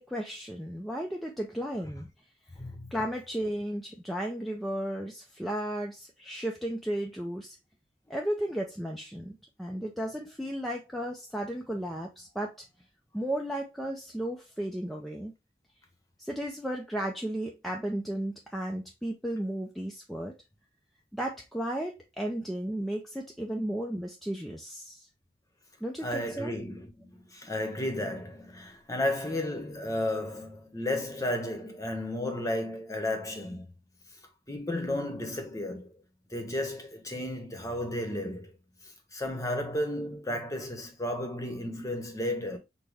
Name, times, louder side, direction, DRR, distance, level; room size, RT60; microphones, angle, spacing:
voice 1, 0.0-2.1 2.9-7.6 8.1-12.6 13.1-15.3 16.2-20.4 21.1-25.1 25.8-26.5, right 1 dB, ahead, 0.5 m, -34 dB
voice 2, 2.6-2.9 26.0-33.7 34.5-35.9 36.3-38.5 39.1-42.6, left 1 dB, 20° left, 0.9 m, -33 dB
6.2 x 2.2 x 3.4 m
head